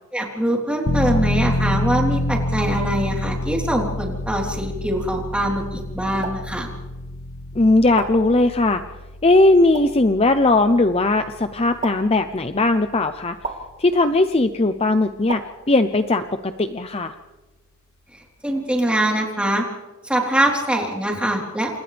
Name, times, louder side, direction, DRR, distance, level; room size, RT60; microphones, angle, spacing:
voice 1, 0.1-6.7 18.1-19.6 20.0-21.8, right 1 dB, 5° right, -1 dB, 3.9 m, -23 dB
sound 1, 0.9-13.4 13.7-13.8, left 1 dB, 65° left, 1.1 m, -28 dB
sound 2, 6.2-6.4 7.9-8.1 9.7-9.9 11.8-11.9 13.4-13.6 15.3-15.4, right 4 dB, 35° right, 3.5 m, -29 dB
voice 2, 7.6-8.8 9.2-13.4 13.8-15.4 15.7-17.1, left 2 dB, 25° left, 8 dB, 0.7 m, -18 dB
29.0 x 27.5 x 3.5 m, 1.2 s
head